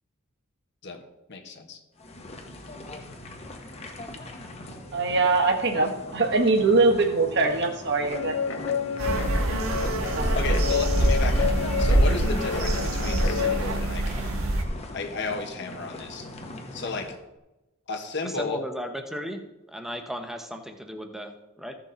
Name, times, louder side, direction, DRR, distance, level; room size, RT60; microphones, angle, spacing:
voice 1, 0.8-1.8 10.0-14.3 14.9-16.3 16.7-17.1 17.9-18.6, left 3 dB, 55° left, 3 dB, 1.3 m, -34 dB
sound 1, 2.0-17.2, left 2 dB, 30° left, 1.1 m, -40 dB
voice 2, 4.9-8.3 10.1-10.4, right 3 dB, 50° right, 2 dB, 1.3 m, -22 dB
Guitar, 8.1-13.6, left 6 dB, 70° left, 0.8 m, -29 dB
sound 2, 9.0-14.6, right 1 dB, 75° right, 1.4 m, -24 dB
voice 3, 18.2-21.7, equal, ahead, 5 dB, 0.8 m, -36 dB
15.0 x 6.1 x 4.0 m, 0.99 s
head